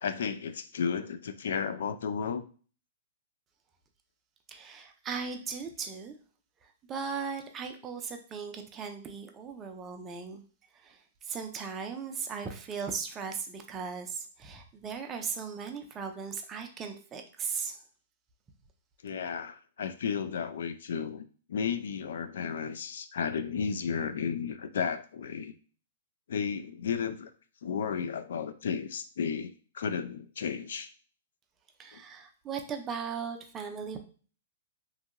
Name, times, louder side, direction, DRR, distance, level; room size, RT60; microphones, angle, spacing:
voice 1, 0.0-2.5 19.0-25.5 26.3-27.3 27.6-30.9 31.9-32.0, left 6 dB, 75° left, 12 dB, 0.3 m, -33 dB
voice 2, 4.5-6.2 6.6-10.4 10.7-17.8 31.8-34.0, right 6 dB, 20° right, 5 dB, 0.4 m, -38 dB
2.9 x 2.7 x 2.5 m, 0.39 s
hypercardioid pair, 150°, 0 cm